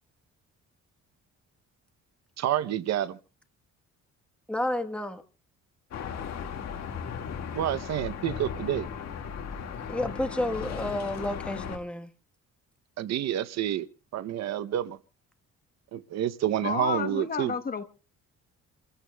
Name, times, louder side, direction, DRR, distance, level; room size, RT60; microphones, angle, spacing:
voice 1, 2.4-3.2 7.5-8.9 13.0-13.9 14.1-15.0 15.9-17.5, right 11 dB, 65° right, 0.7 m, -29 dB
voice 2, 4.5-5.2 9.9-12.1, left 1 dB, 5° left, 1.1 m, -31 dB
sound 1, 5.9-11.8, left 7 dB, 60° left, 1.9 m, -36 dB
voice 3, 16.6-17.8, left 5 dB, 30° left, 1.0 m, -30 dB
28.5 x 14.5 x 2.2 m
cardioid pair, 150°, 29 cm